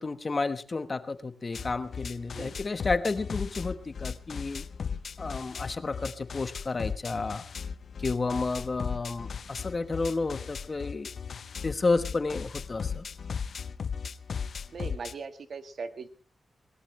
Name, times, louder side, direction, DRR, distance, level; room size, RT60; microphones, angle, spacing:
voice 1, 0.0-4.6 5.2-7.4 8.0-11.1 11.6-13.0, left 3 dB, 30° left, 11 dB, 1.1 m, -31 dB
sound 1, 1.5-15.1, left 6 dB, 55° left, 0.7 m, -37 dB
voice 2, 14.7-16.1, right 5 dB, 55° right, 10 dB, 1.6 m, -39 dB
21.5 x 19.5 x 3.2 m, 0.37 s
wide cardioid pair, 155°, 0 cm